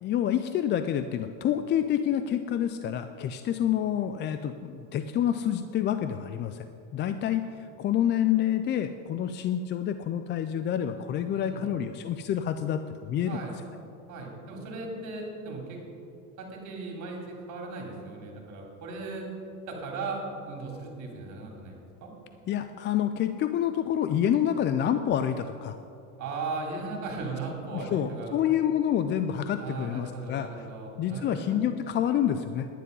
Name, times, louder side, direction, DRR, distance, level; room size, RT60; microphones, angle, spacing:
voice 1, 0.0-6.7 6.9-13.4 22.5-25.8 27.7-30.5 31.0-32.7, left 10 dB, 30° left, 10 dB, 0.4 m, -28 dB
voice 2, 11.3-11.7 13.3-13.6 14.1-15.8 16.4-19.3 19.7-22.1 26.2-28.4 29.6-31.6, right 3 dB, 45° right, 0 dB, 3.4 m, -37 dB
11.0 x 10.0 x 5.4 m, 2.6 s
supercardioid pair, 110°, 39 cm